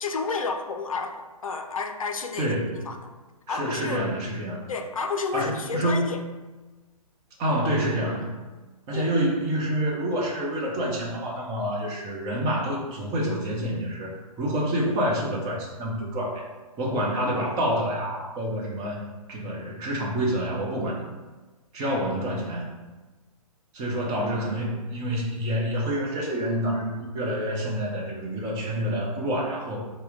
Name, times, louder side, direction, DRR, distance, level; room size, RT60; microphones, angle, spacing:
voice 1, 0.0-3.1 3.5-4.1 4.7-6.2 8.9-9.2, left 4 dB, 65° left, 6 dB, 0.5 m, -31 dB
voice 2, 2.4-2.8 3.5-4.6 5.3-6.1 7.4-8.3 8.9-16.5 16.8-19.0 19.3-21.0 21.7-22.7 23.7-29.8, equal, 20° right, -2 dB, 0.8 m, -27 dB
5.6 x 2.2 x 3.8 m, 1.2 s
figure-of-eight pair, 125°, 19 cm